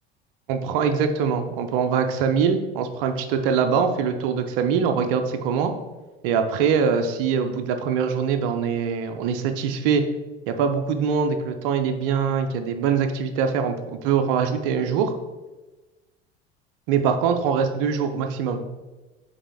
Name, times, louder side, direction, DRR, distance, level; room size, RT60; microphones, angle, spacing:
voice 1, 0.5-5.7 6.2-10.0 10.5-15.1 16.9-18.6, right 6 dB, 55° right, 6 dB, 0.6 m, -23 dB
4.1 x 3.6 x 3.4 m, 1.2 s
figure-of-eight pair, 70°, 33 cm